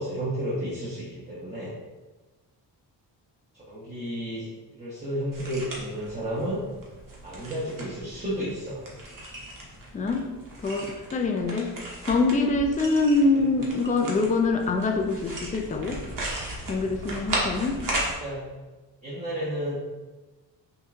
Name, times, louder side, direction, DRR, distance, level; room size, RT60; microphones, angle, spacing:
voice 1, 0.0-1.7 3.5-6.6 7.2-8.8 13.3-13.4 18.0-18.4 19.0-19.7, equal, 15° right, -9 dB, 1.2 m, -32 dB
sound 1, 5.3-18.1, right 1 dB, 45° right, 1.1 m, -36 dB
voice 2, 9.9-10.3 10.6-11.7 12.0-16.0 16.7-17.8, left 3 dB, 20° left, 3 dB, 0.4 m, -24 dB
5.4 x 2.3 x 2.6 m, 1.2 s
cardioid pair, 80°, 44 cm